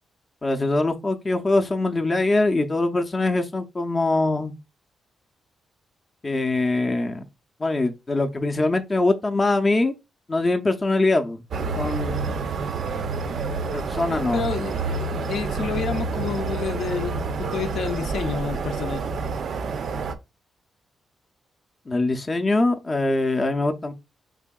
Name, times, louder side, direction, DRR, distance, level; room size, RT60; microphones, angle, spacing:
voice 1, 0.4-4.5 6.2-7.2 7.6-9.9 10.3-11.4 11.8-12.4 13.7-14.4 21.9-23.9, left 2 dB, 25° left, 0.5 m, -23 dB
sound 1, 11.5-20.1, right 4 dB, 60° right, 0.4 m, -28 dB
voice 2, 14.3-19.2, left 6 dB, 70° left, 0.5 m, -30 dB
4.8 x 3.5 x 2.2 m
cardioid pair, 135°, 0 cm